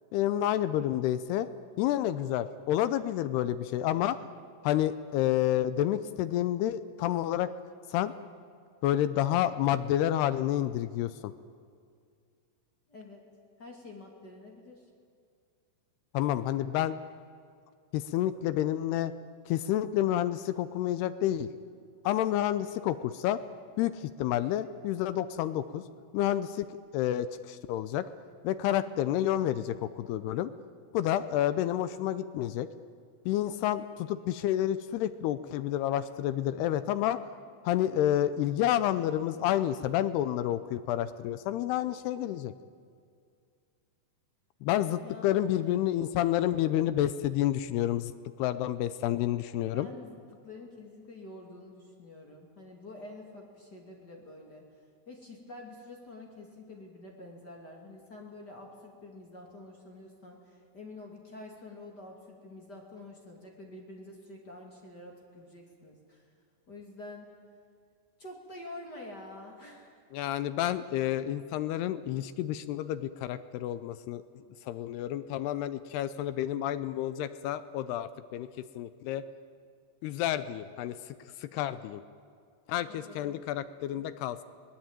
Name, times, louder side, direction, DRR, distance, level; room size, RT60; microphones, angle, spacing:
voice 1, 0.1-1.5 1.8-4.2 4.6-7.5 7.9-8.1 8.8-11.3 16.1-17.0 17.9-19.1 19.5-21.5 22.0-23.4 23.8-25.8 26.1-26.7 26.9-28.1 28.4-30.5 30.9-32.7 33.3-37.2 37.6-42.5 44.6-48.1 48.4-49.9 70.1-74.2 74.7-78.5 78.8-79.2 80.0-81.0 81.4-82.0 82.7-84.4, left 12 dB, 80° left, 13 dB, 2.5 m, -29 dB
voice 2, 12.9-13.2 13.6-14.8 45.0-45.9 49.7-54.7 55.1-66.2 66.7-67.3 68.2-70.0 82.9-83.4, left 2 dB, 30° left, 0 dB, 2.6 m, -47 dB
24.5 x 19.0 x 9.0 m, 2.2 s
omnidirectional pair, 5.1 m